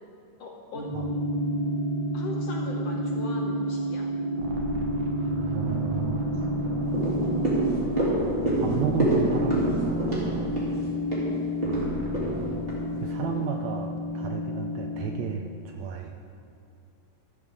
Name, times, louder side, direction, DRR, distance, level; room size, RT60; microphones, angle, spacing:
voice 1, 0.4-0.9 2.1-4.1 12.0-12.7, left 3 dB, 70° left, 1 dB, 1.5 m, -40 dB
sound 1, 0.7-15.1, equal, 20° left, 2.5 m, -30 dB
sound 2, 3.7-4.0 4.4-11.3 11.6-12.7, right 2 dB, 55° right, 1.4 m, -35 dB
voice 2, 5.5-6.2 8.6-10.1 13.0-16.1, right 7 dB, 75° right, 3 dB, 1.7 m, -32 dB
sound 3, 6.9-13.4 13.8-13.9, right 1 dB, 20° right, 2.7 m, -28 dB
14.0 x 13.5 x 3.7 m, 2.4 s
omnidirectional pair, 3.7 m